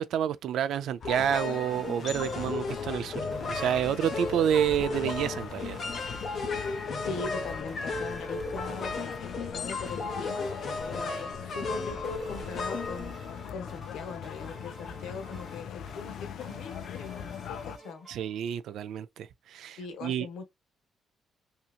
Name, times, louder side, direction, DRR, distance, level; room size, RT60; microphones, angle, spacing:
voice 1, 0.0-3.2 3.5-5.8 18.1-20.3, right 9 dB, 70° right, 0.3 m, -29 dB
sound 1, 1.0-13.7, left 3 dB, 40° left, 0.8 m, -35 dB
sound 2, 1.1-18.6, right 2 dB, 10° right, 1.2 m, -52 dB
sound 3, 2.1-17.8, left 8 dB, 60° left, 0.3 m, -42 dB
voice 2, 7.0-13.1 13.5-18.1 19.8-20.5, left 5 dB, 80° left, 0.9 m, -41 dB
2.8 x 2.8 x 2.4 m
cardioid pair, 160°, 0 cm